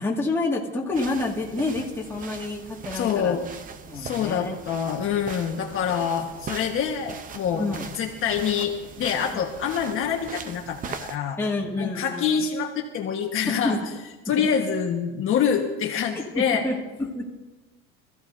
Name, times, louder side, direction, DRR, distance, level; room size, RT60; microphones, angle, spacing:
voice 1, 0.0-3.4 3.9-4.6 7.6-7.9 11.4-12.3 13.4-13.8 14.4-14.5 16.2-17.3, left 2 dB, 5° left, -3 dB, 2.0 m, -28 dB
sound 1, 0.9-11.2, right 6 dB, 25° right, 0.7 m, -40 dB
voice 2, 2.9-3.4 3.9-7.6 7.9-11.4 11.8-13.8 14.2-16.6, left 7 dB, 40° left, 1 dB, 1.4 m, -26 dB
25.0 x 14.5 x 2.7 m, 1.2 s
cardioid pair, 140°, 32 cm